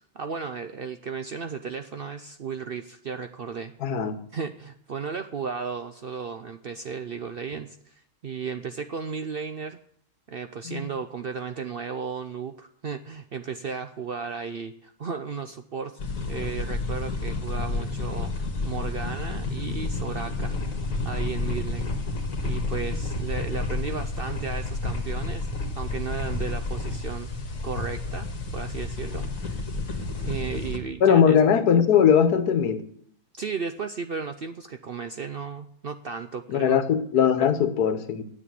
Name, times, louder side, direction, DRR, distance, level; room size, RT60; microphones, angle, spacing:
voice 1, 0.1-3.7 4.3-9.8 10.3-16.0 16.3-18.3 18.7-20.7 21.0-21.9 22.4-25.5 25.7-27.3 27.6-28.3 28.5-29.7 30.2-31.4 33.4-36.8, right 5 dB, 55° right, 0.6 m, -34 dB
voice 2, 3.8-4.2 10.6-10.8 31.0-32.8 36.5-38.2, left 7 dB, 85° left, 1.6 m, -20 dB
sound 1, 16.0-30.8, left 3 dB, 60° left, 2.3 m, -30 dB
10.0 x 7.7 x 9.1 m
omnidirectional pair, 1.6 m